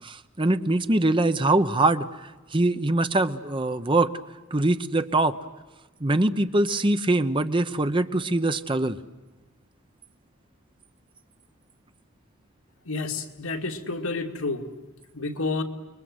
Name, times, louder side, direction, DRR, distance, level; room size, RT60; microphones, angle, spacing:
voice 1, 0.0-2.1 2.5-4.1 4.5-5.3 6.0-9.0, right 2 dB, 25° right, 11 dB, 0.9 m, -23 dB
voice 2, 12.9-14.7 15.1-15.6, left 3 dB, 80° left, 3 dB, 2.6 m, -30 dB
29.5 x 22.0 x 8.1 m, 1.1 s
head